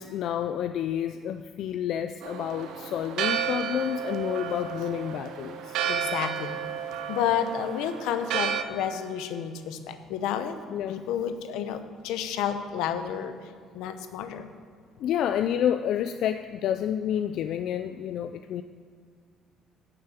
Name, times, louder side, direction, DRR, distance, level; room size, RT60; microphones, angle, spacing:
voice 1, 0.0-5.8 10.7-11.0 15.0-18.6, left 10 dB, 65° left, 9 dB, 0.3 m, -29 dB
Church bell, 2.2-8.6, right 8 dB, 70° right, 0.8 m, -32 dB
voice 2, 5.9-6.6 7.1-10.6 10.9-14.5, left 8 dB, 85° left, 9 dB, 0.8 m, -31 dB
9.0 x 6.8 x 6.9 m, 2.1 s
cardioid pair, 115°, 0 cm